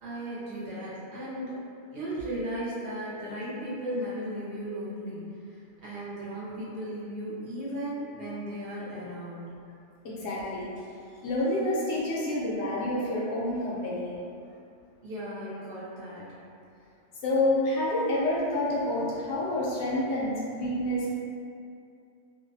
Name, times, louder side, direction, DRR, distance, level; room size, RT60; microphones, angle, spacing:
voice 1, 0.0-1.6 1.9-5.6 5.8-9.5 15.0-16.3, right 1 dB, 60° right, -9 dB, 0.8 m, -36 dB
voice 2, 10.0-10.7 11.2-14.1 17.2-21.1, left 1 dB, 75° left, -6 dB, 0.9 m, -28 dB
2.4 x 2.1 x 2.6 m, 2.5 s
omnidirectional pair, 1.2 m